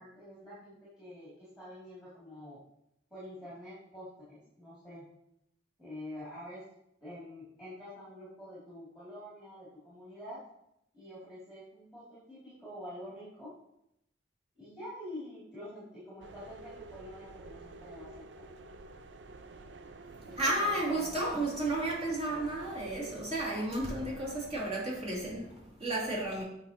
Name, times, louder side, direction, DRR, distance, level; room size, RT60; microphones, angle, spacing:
voice 1, 0.0-2.6 3.1-5.1 5.8-6.6 7.0-10.4 10.9-13.5 14.5-18.5 20.2-21.2, left 1 dB, 5° right, -11 dB, 2.4 m, -47 dB
sound 1, 16.2-24.7, right 3 dB, 70° right, 0.5 m, -50 dB
voice 2, 20.3-26.4, right 1 dB, 35° right, -5 dB, 2.5 m, -33 dB
8.0 x 5.5 x 2.8 m, 0.79 s
head